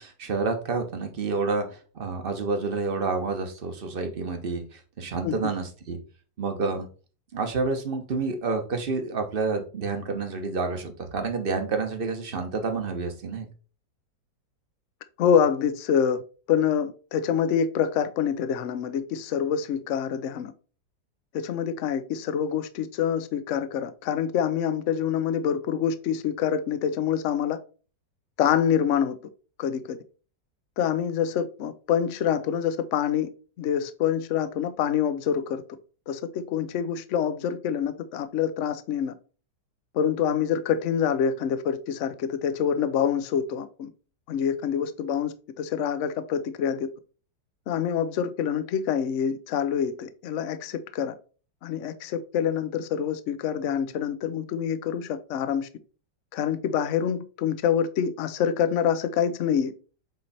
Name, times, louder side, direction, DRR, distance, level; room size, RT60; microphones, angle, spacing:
voice 1, 0.0-6.0 6.4-6.9 7.3-13.5, right 4 dB, 35° right, 1.0 m, -29 dB
voice 2, 15.2-16.2 16.5-20.5 21.3-27.6 28.4-29.2 29.6-30.0 30.8-33.3 33.6-35.6 36.1-39.1 39.9-43.9 44.3-46.9 47.7-51.1 51.6-55.7 56.3-59.7, left 8 dB, 65° left, 0.7 m, -26 dB
8.0 x 3.2 x 4.2 m
omnidirectional pair, 2.0 m